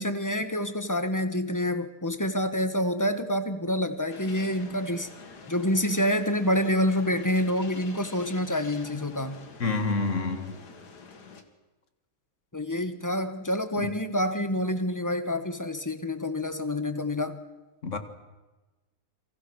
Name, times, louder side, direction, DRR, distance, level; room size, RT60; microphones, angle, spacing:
voice 1, 0.0-5.1 5.5-9.5 12.5-17.4, left 1 dB, 10° left, 9 dB, 1.3 m, -27 dB
sound 1, 4.1-11.4, left 4 dB, 85° left, 2.5 m, -47 dB
voice 2, 9.6-10.6 13.8-13.9 17.8-18.0, left 3 dB, 50° left, 8 dB, 2.2 m, -28 dB
29.0 x 24.0 x 6.4 m, 1.2 s
omnidirectional pair, 1.7 m